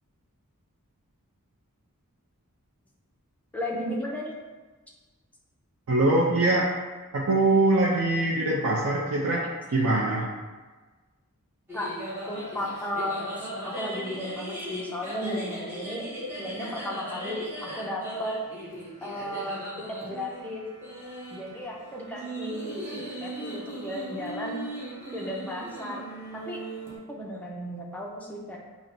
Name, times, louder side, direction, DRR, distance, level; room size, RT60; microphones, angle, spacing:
voice 1, 3.5-4.4 11.7-11.9 12.3-16.1 16.4-18.3 19.0-20.6 21.3-24.7 25.1-26.0 26.3-26.6 27.1-28.6, left 1 dB, 5° left, -3 dB, 0.4 m, -34 dB
voice 2, 5.9-6.7 7.1-10.3, right 2 dB, 70° right, -4 dB, 0.4 m, -23 dB
sound 1, 11.7-27.0, right 1 dB, 10° right, 0.8 m, -38 dB
5.8 x 2.0 x 2.6 m, 1.3 s
head